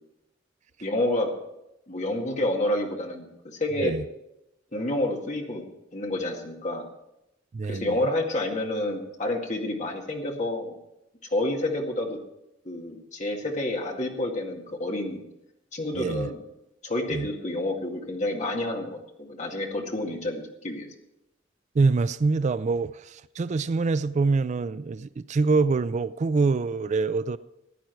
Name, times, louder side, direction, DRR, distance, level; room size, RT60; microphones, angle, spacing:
voice 1, 0.8-1.3 1.9-3.9 4.7-5.7 5.9-6.8 7.7-10.7 11.3-12.2 12.6-15.2 15.7-16.4 16.8-20.9, left 1 dB, 40° left, 2.1 m, -29 dB
voice 2, 7.5-8.0 15.9-16.3 17.1-17.3 21.7-27.4, right 4 dB, 40° right, 0.3 m, -25 dB
15.5 x 10.5 x 4.6 m
head